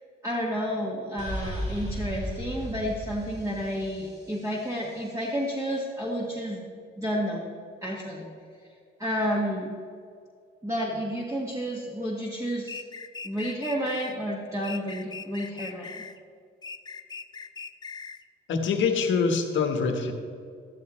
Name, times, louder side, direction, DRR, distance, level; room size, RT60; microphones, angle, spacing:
voice 1, 0.2-6.6 7.0-7.5 7.8-8.2 9.0-9.8 10.6-12.8 13.2-16.0, equal, 15° right, -4 dB, 1.8 m, -30 dB
sound 1, 1.2-4.9, equal, 35° right, 3.0 m, -36 dB
sound 2, 12.7-14.1 14.6-16.2 16.6-18.2, left 5 dB, 20° left, 0.5 m, -40 dB
voice 2, 18.5-20.1, left 5 dB, 75° left, 5 dB, 1.4 m, -24 dB
13.0 x 13.0 x 3.2 m, 2.3 s
cardioid pair, 90°, 20 cm